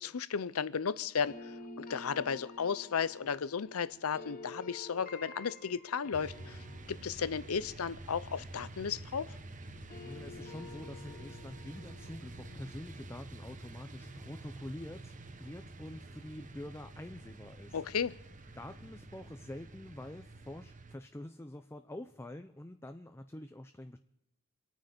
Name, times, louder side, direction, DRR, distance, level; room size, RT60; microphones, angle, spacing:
voice 1, 0.0-6.6 6.9-9.4 17.7-18.1, left 6 dB, 85° left, 17 dB, 0.6 m, -34 dB
sound 1, 1.3-9.3 9.6-14.6, left 3 dB, 40° left, 2.1 m, -51 dB
sound 2, 6.1-20.9, right 2 dB, 35° right, 0.9 m, -49 dB
voice 2, 10.0-15.1 15.4-17.8 18.6-24.0, left 1 dB, 10° left, 8 dB, 0.5 m, -46 dB
27.5 x 9.2 x 5.2 m, 0.91 s
head